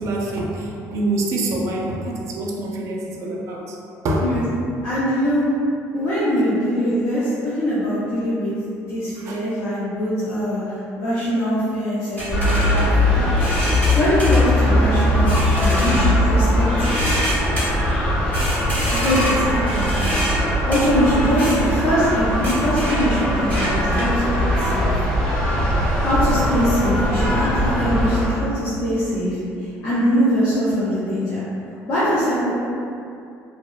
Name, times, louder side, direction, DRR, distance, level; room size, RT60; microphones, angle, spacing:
voice 1, 0.0-3.8 4.0-4.3 9.2-9.4, right 2 dB, 55° right, -1 dB, 0.4 m, -25 dB
voice 2, 4.8-5.5 5.9-8.5 8.8-13.3 14.0-17.2 19.0-20.0 20.7-25.0 26.0-31.4 31.9-32.5, equal, 65° left, -12 dB, 0.6 m, -22 dB
sound 1, 12.2-24.4, equal, 30° left, 0.9 m, -28 dB
sound 2, 12.3-28.3, left 1 dB, 10° left, 0.6 m, -20 dB
2.7 x 2.0 x 2.3 m, 2.5 s
cardioid pair, 130°, 6 cm